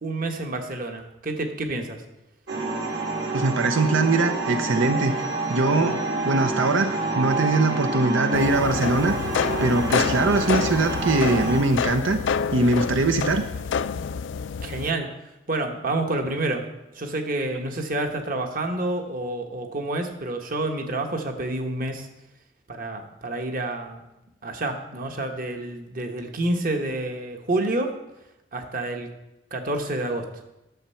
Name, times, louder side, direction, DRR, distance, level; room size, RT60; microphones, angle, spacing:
voice 1, 0.0-2.0 14.6-15.1 15.5-16.6 16.9-22.1 22.7-24.0 24.4-27.9 28.5-29.1 29.5-30.3, right 2 dB, 45° right, 5 dB, 1.1 m, -28 dB
sound 1, 2.5-11.6, right 3 dB, 65° right, 2.0 m, -28 dB
voice 2, 3.3-5.2 5.5-6.0 6.2-9.1 9.6-12.2 12.5-13.5, right 2 dB, 85° right, 7 dB, 0.7 m, -22 dB
sound 2, 8.3-14.9, left 6 dB, 70° left, 0.4 m, -28 dB
10.5 x 7.1 x 5.6 m, 0.94 s
head